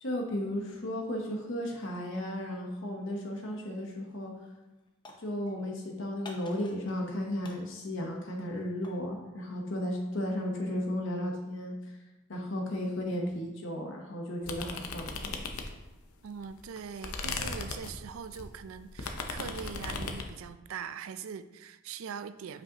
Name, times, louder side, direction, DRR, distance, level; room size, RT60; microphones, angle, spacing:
voice 1, 0.0-4.3 5.2-11.7 12.3-15.5, left 1 dB, 60° left, 1 dB, 0.9 m, -34 dB
sound 1, 3.9-4.2 4.5-5.7 6.2-7.1 7.4-9.1, left 2 dB, 20° left, 0.7 m, -51 dB
sound 2, 14.4-16.0 16.4-20.3, left 4 dB, 90° left, 0.7 m, -37 dB
voice 2, 16.2-22.6, right 7 dB, 75° right, 12 dB, 0.4 m, -42 dB
8.4 x 5.1 x 2.8 m, 1.0 s
head